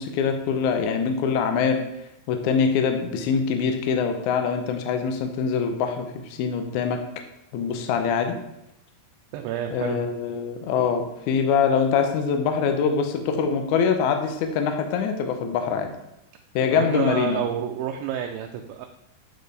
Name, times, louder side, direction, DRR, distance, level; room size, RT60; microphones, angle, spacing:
voice 1, 0.0-1.8 2.3-7.0 7.5-8.4 9.7-15.9 16.6-17.5, left 6 dB, 75° left, 5 dB, 1.8 m, -24 dB
voice 2, 9.3-10.0 16.7-18.9, right 10 dB, 85° right, 4 dB, 2.3 m, -29 dB
8.2 x 4.5 x 3.3 m, 0.87 s
omnidirectional pair, 4.1 m